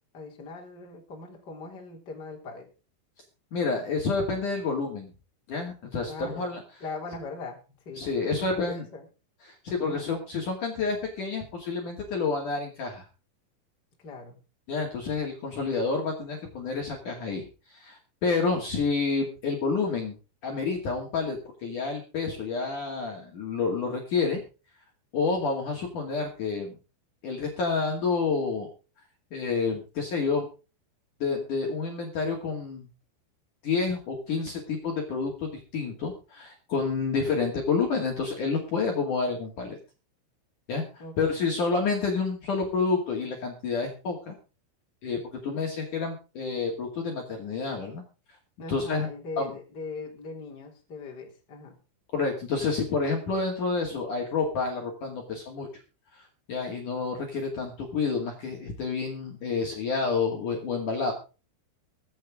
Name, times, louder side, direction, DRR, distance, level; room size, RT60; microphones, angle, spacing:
voice 1, 0.1-2.7 6.1-6.5 6.8-7.6 7.8-9.0 9.8-10.1 14.0-14.4 41.0-41.4 48.6-51.8, left 3 dB, 25° left, 1 dB, 3.0 m, -40 dB
voice 2, 3.5-5.1 5.5-6.6 8.0-8.8 9.4-13.0 14.7-20.2 20.4-24.4 25.1-26.8 27.2-28.7 29.3-30.5 31.2-32.9 33.6-39.8 40.7-44.4 45.0-48.0 48.7-49.1 49.4-49.5 52.1-55.7 56.1-61.1, left 4 dB, 45° left, 0 dB, 3.3 m, -29 dB
23.0 x 8.0 x 3.7 m, 0.33 s
omnidirectional pair, 5.8 m